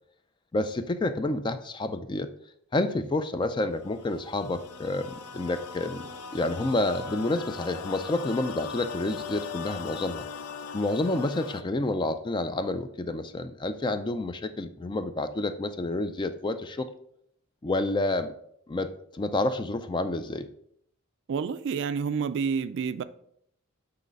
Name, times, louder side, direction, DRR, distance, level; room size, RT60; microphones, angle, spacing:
voice 1, 0.5-2.3 2.7-10.3 10.7-16.9 17.6-18.3 18.7-20.5, left 2 dB, 20° left, 0.4 m, -29 dB
sound 1, 3.8-11.6, left 6 dB, 80° left, 0.5 m, -40 dB
voice 2, 21.3-23.0, right 6 dB, 55° right, 0.3 m, -29 dB
7.7 x 3.2 x 5.2 m
head